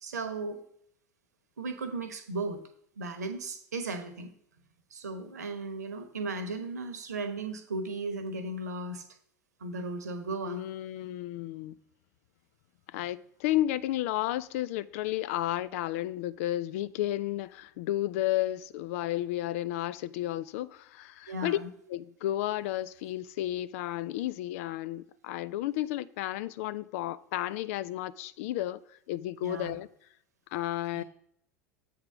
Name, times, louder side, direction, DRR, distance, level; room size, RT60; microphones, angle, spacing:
voice 1, 0.0-0.6 1.6-2.6 3.0-4.3 4.9-9.0 9.6-10.6 21.3-21.7 29.4-29.8 30.9-31.0, right 3 dB, 75° right, 1.0 m, -36 dB
voice 2, 10.5-11.7 12.9-21.6 21.9-29.9 30.5-31.0, left 14 dB, 55° left, 0.3 m, -32 dB
7.7 x 3.8 x 5.6 m
figure-of-eight pair, 80°, 9 cm